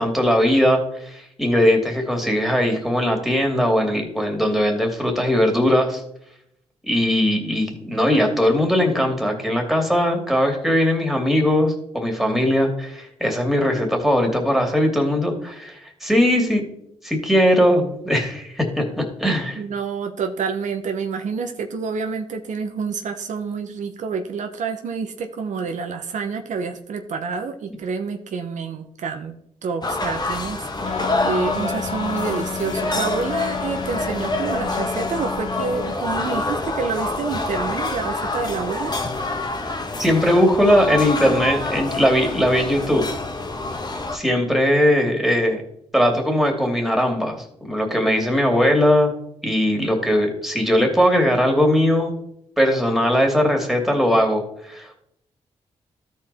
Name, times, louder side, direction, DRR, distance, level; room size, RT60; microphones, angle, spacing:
voice 1, 0.0-6.0 6.9-16.6 17.0-19.6 40.0-43.0 44.1-45.6 45.9-49.1 49.4-52.1 52.6-54.9, equal, ahead, 2 dB, 2.8 m, -19 dB
voice 2, 19.5-29.3 29.6-39.0, right 5 dB, 75° right, 5 dB, 0.9 m, -28 dB
sound 1, 29.8-44.2, left 2 dB, 35° left, 1.5 m, -27 dB
Wind instrument woodwind instrument, 30.8-36.0, left 7 dB, 50° left, 0.8 m, -32 dB
13.0 x 4.6 x 4.3 m, 0.73 s
cardioid pair, 60°, 13 cm